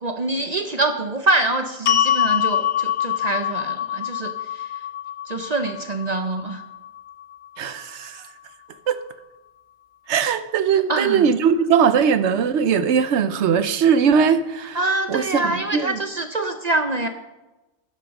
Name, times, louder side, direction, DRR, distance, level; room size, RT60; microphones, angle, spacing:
voice 1, 0.0-4.7 5.3-6.6 10.9-11.3 14.7-17.1, right 2 dB, 40° right, 7 dB, 0.7 m, -25 dB
sound 1, 1.9-8.1, left 10 dB, 70° left, 0.9 m, -25 dB
voice 2, 7.6-8.2 8.9-9.0 10.1-14.8 15.1-16.0, right 7 dB, 75° right, 12 dB, 1.0 m, -20 dB
11.0 x 7.5 x 5.2 m, 1.0 s
omnidirectional pair, 1.2 m